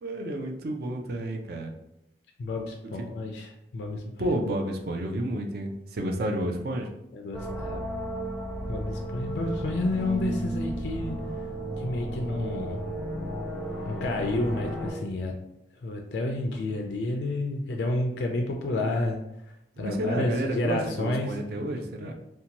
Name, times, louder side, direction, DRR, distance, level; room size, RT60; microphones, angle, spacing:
voice 1, 0.0-1.7 4.2-6.9 19.8-22.1, right 1 dB, 60° right, 3 dB, 0.4 m, -30 dB
voice 2, 2.4-4.3 7.1-7.8 8.7-11.2 11.8-12.8 13.8-15.3 15.8-19.2 19.8-21.4, left 2 dB, 65° left, 2 dB, 0.3 m, -30 dB
sound 1, 7.3-14.9, right 1 dB, ahead, 0.5 m, -33 dB
2.7 x 2.1 x 2.8 m, 0.83 s
head